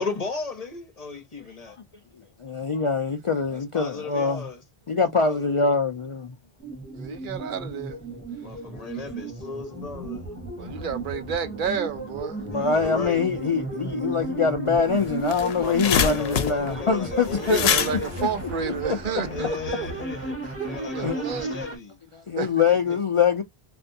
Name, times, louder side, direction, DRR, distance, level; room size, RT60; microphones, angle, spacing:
voice 1, 0.0-1.8 3.5-4.6 5.2-5.8 8.4-10.3 12.5-13.2 15.5-18.1 19.3-22.0 22.9-23.0, left 4 dB, 40° left, 1.0 m, -36 dB
voice 2, 2.4-4.5 4.9-6.3 12.4-17.7 18.2-18.3 18.9-19.0 20.7-21.2 22.1-23.4, left 5 dB, 55° left, 0.3 m, -24 dB
sound 1, 6.6-21.8, right 2 dB, 15° left, 1.2 m, -34 dB
voice 3, 6.9-8.0 10.6-12.4 12.8-12.9 17.4-20.0 20.4-21.5 22.4-22.6, right 6 dB, 55° right, 0.7 m, -31 dB
sound 2, 14.7-14.8 15.1-19.3, left 8 dB, 75° left, 0.9 m, -26 dB
3.3 x 2.6 x 2.6 m
omnidirectional pair, 1.1 m